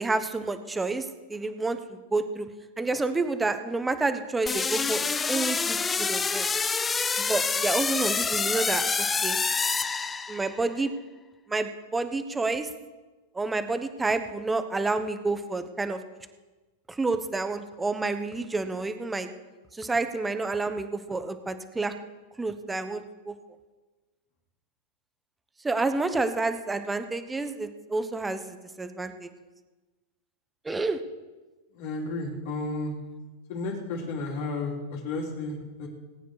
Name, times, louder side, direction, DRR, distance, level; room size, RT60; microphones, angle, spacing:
voice 1, 0.0-2.5 2.8-6.5 7.2-8.8 9.2-9.4 10.3-10.9 11.5-12.7 13.3-16.0 16.9-19.3 19.7-21.9 22.4-23.3 25.6-29.3 30.6-31.0, right 3 dB, 10° right, 9 dB, 1.0 m, -29 dB
sound 1, 4.5-10.7, left 5 dB, 15° left, 0.6 m, -27 dB
voice 2, 31.7-32.9 33.5-35.9, left 2 dB, 60° left, -1 dB, 3.8 m, -32 dB
19.0 x 9.1 x 4.9 m, 1.2 s
hypercardioid pair, 130°, 0 cm